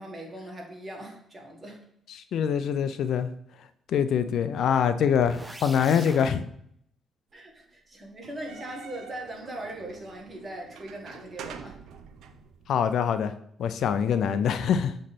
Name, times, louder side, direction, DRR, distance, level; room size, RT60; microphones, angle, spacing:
voice 1, 0.0-1.8 7.3-11.8, right 1 dB, 25° right, 0 dB, 1.9 m, -40 dB
voice 2, 2.1-3.3 3.9-6.5 12.7-13.3 13.6-14.9, left 7 dB, 70° left, 11 dB, 0.4 m, -24 dB
sound 1, 5.1-6.3, right 1 dB, 5° right, 0.7 m, -42 dB
sound 2, 8.2-12.8, right 6 dB, 80° right, 0.5 m, -46 dB
7.4 x 3.2 x 4.2 m, 0.68 s
cardioid pair, 90°, 0 cm